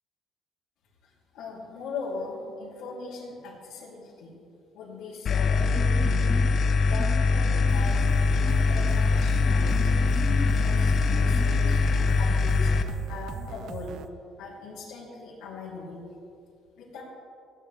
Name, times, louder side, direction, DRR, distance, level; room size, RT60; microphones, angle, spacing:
voice 1, 1.0-4.3 4.7-6.3 6.8-9.9 10.4-13.9 14.4-16.0 16.8-17.0, left 4 dB, 85° left, -9 dB, 2.8 m, -40 dB
sound 1, 5.3-12.8, left 4 dB, 45° left, 0.6 m, -22 dB
sound 2, 5.6-12.1, left 2 dB, 25° left, 1.1 m, -39 dB
sound 3, 7.7-14.1, right 7 dB, 70° right, 0.6 m, -40 dB
16.0 x 10.0 x 3.4 m, 2.4 s
cardioid pair, 140°, 0 cm